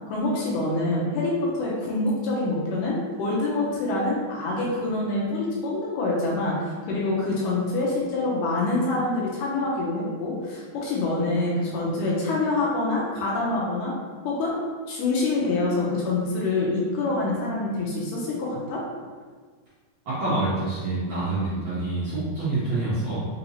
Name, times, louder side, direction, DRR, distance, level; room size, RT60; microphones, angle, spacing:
voice 1, 0.1-13.9 14.3-14.5 14.9-18.8, left 2 dB, 75° left, -4 dB, 2.0 m, -26 dB
voice 2, 20.1-23.3, right 2 dB, 70° right, -12 dB, 1.6 m, -27 dB
5.5 x 2.9 x 2.7 m, 1.5 s
omnidirectional pair, 4.3 m